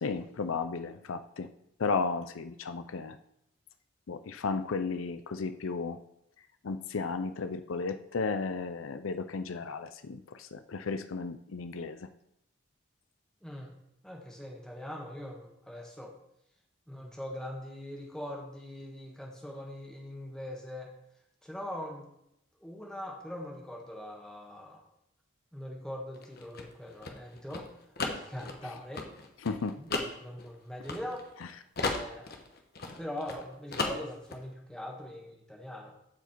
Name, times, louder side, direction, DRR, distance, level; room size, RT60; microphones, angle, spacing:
voice 1, 0.0-1.5 1.8-3.2 4.1-6.0 6.6-12.1 29.5-29.8, left 4 dB, 80° left, 10 dB, 0.5 m, -34 dB
voice 2, 13.4-13.7 14.0-16.1 16.9-20.9 21.4-22.1 22.6-24.8 25.5-27.7 28.1-29.1 29.8-31.2 31.8-32.3 32.9-36.0, left 1 dB, 5° left, 0 dB, 1.6 m, -42 dB
sound 1, 26.1-31.4 31.8-33.4 33.7-34.4, left 3 dB, 50° left, 1.2 m, -35 dB
14.5 x 4.9 x 4.5 m, 0.79 s
head